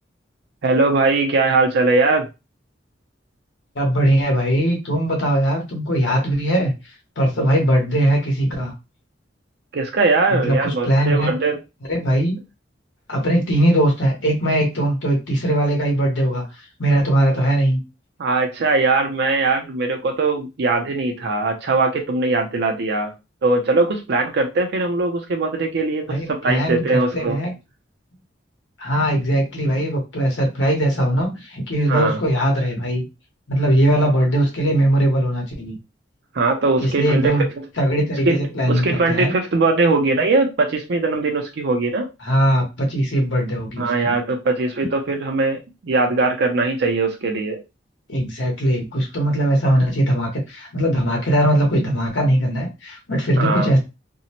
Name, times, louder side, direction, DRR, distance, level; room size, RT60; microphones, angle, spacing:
voice 1, 0.6-2.3 9.7-11.6 18.2-23.1 23.4-27.4 31.9-32.2 36.3-37.7 38.3-38.4 38.7-42.1 43.8-47.6 53.4-53.7, right 3 dB, 60° right, 3 dB, 0.5 m, -20 dB
voice 2, 3.7-6.7 7.2-8.7 10.3-11.3 11.9-12.4 13.1-17.8 26.1-27.5 28.8-33.0 33.5-35.8 36.8-37.5 37.8-39.3 42.2-44.1 48.1-53.8, right 1 dB, 85° left, 0 dB, 1.0 m, -20 dB
2.6 x 2.1 x 2.8 m, 0.25 s
head